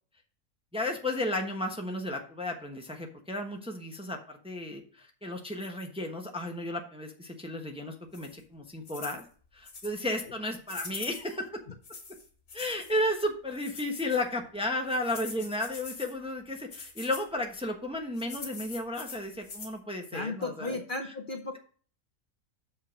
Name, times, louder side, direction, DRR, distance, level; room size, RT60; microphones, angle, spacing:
voice 1, 0.7-9.2 9.5-11.5 12.5-20.8, left 1 dB, 5° right, 2 dB, 1.0 m, -33 dB
sound 1, 8.1-8.4 8.9-9.2 9.7-10.0 10.7-11.4 11.8-12.9 13.5-14.2 14.9-16.1 16.7-17.3 18.2-19.8, left 4 dB, 65° left, 2.5 m, -44 dB
voice 2, 20.1-21.6, left 3 dB, 40° left, 3 dB, 0.9 m, -35 dB
6.4 x 5.0 x 6.3 m, 0.43 s
omnidirectional pair, 1.5 m